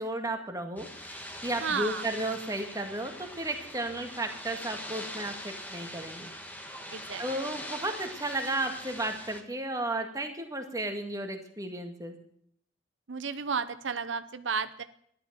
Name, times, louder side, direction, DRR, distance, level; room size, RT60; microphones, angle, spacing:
voice 1, 0.0-6.3 7.2-12.1, right 1 dB, 20° right, 4 dB, 2.0 m, -34 dB
sound 1, 0.8-9.4, equal, 10° left, 1.5 m, -42 dB
voice 2, 1.6-2.1 6.9-7.2 13.1-14.8, right 5 dB, 85° right, 12 dB, 0.8 m, -32 dB
13.0 x 11.0 x 7.6 m, 0.66 s
head